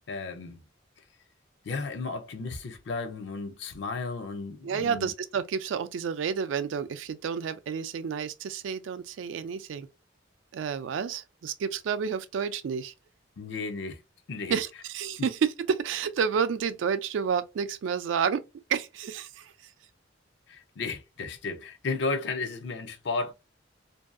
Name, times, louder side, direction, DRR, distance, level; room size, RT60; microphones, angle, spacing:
voice 1, 0.1-0.6 1.6-5.1 13.4-14.0 14.3-14.6 20.5-23.3, left 3 dB, 60° left, 0.5 m, -34 dB
voice 2, 4.6-9.9 10.5-12.9 14.5-18.4 18.7-19.5, right 6 dB, 75° right, 0.3 m, -30 dB
2.6 x 2.3 x 2.3 m
head